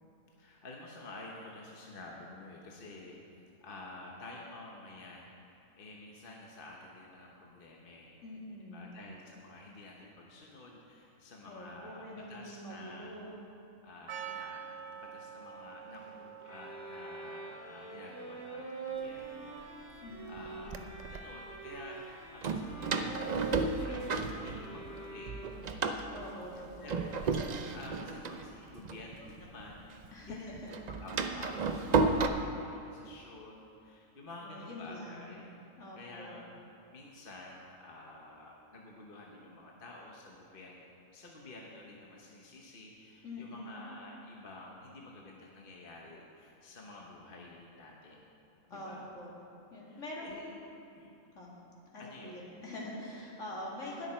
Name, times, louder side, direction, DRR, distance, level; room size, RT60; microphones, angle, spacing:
voice 1, 0.4-3.2 3.6-8.2 8.7-13.2 13.8-19.6 20.0-25.4 25.8-26.2 26.8-27.2 27.7-30.6 30.9-35.5 36.0-36.5 36.9-48.2 48.7-49.1 49.9-50.6 50.9-51.2 52.0-52.4, left 2 dB, 45° left, -2 dB, 1.1 m, -50 dB
voice 2, 8.2-9.0 11.4-13.3 20.0-20.8 26.1-27.2 30.1-30.7 31.4-31.5 34.4-35.4 35.8-36.4 43.2-43.9 48.7-49.3 49.7-50.6 51.3-51.5 51.9-54.1, left 1 dB, 60° left, -4 dB, 2.4 m, -45 dB
Percussion, 14.1-19.3, right 8 dB, 65° right, 0.8 m, -47 dB
sound 1, 16.4-25.9, right 4 dB, 75° left, 3.1 m, -44 dB
Door, 19.2-19.3 20.1-21.2 22.4-25.0 25.3-29.8 30.0-32.3, right 4 dB, 85° right, 0.3 m, -33 dB
20.0 x 6.6 x 4.4 m, 2.7 s
omnidirectional pair, 1.5 m